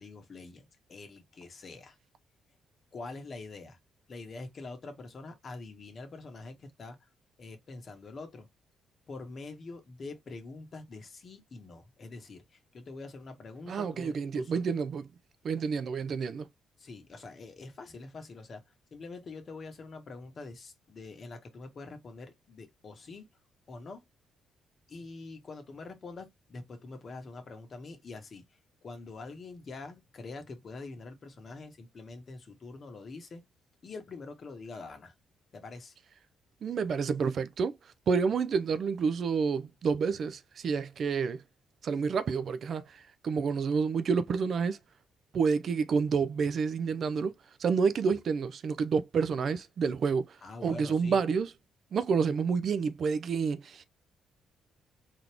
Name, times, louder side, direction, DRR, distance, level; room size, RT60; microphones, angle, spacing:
voice 1, 0.0-2.0 2.9-3.8 4.1-7.1 7.4-8.5 9.1-14.6 16.8-18.6 18.9-23.2 23.7-24.1 24.9-28.4 28.8-33.4 33.8-35.1 35.5-36.0 50.4-51.3, left 3 dB, 45° left, 1.5 m, -45 dB
voice 2, 13.7-15.0 15.4-16.5 36.6-37.8 38.1-41.4 41.8-44.8 45.3-47.3 47.6-50.4 50.6-51.5 51.9-53.8, right 5 dB, 55° right, 0.6 m, -29 dB
4.1 x 3.0 x 3.4 m
cardioid pair, 90°, 0 cm